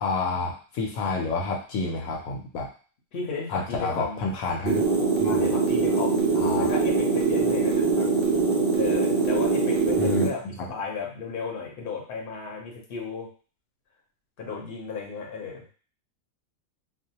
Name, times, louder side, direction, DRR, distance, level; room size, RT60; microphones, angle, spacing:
voice 1, 0.0-2.7 3.5-5.5 6.4-6.8 10.0-10.6, left 3 dB, 75° left, 0 dB, 1.0 m, -29 dB
voice 2, 3.1-4.3 5.3-8.1 8.7-13.3 14.4-15.7, left 5 dB, 50° left, -1 dB, 0.8 m, -34 dB
sound 1, 4.7-10.3, right 4 dB, 65° right, 0.5 m, -23 dB
2.5 x 2.1 x 2.7 m, 0.40 s
omnidirectional pair, 1.5 m